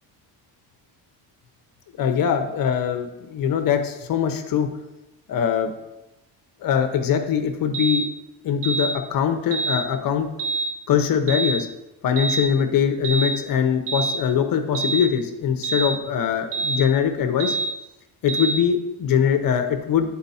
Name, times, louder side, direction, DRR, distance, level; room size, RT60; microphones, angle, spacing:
voice 1, 2.0-4.7 5.3-5.7 6.6-8.1 8.4-10.3 10.9-11.7 12.0-17.6 18.2-20.1, left 8 dB, 50° left, 6 dB, 0.8 m, -22 dB
sound 1, 7.7-8.0 8.6-8.9 9.5-9.8 10.4-10.7 11.3-11.6 12.2-12.4 13.0-13.3 13.9-14.1 14.7-15.0 15.6-15.9 16.5-16.8 17.4-17.7 18.3-18.6, right 3 dB, 30° right, 1.4 m, -25 dB
9.6 x 4.2 x 4.1 m, 0.95 s
cardioid pair, 130°, 43 cm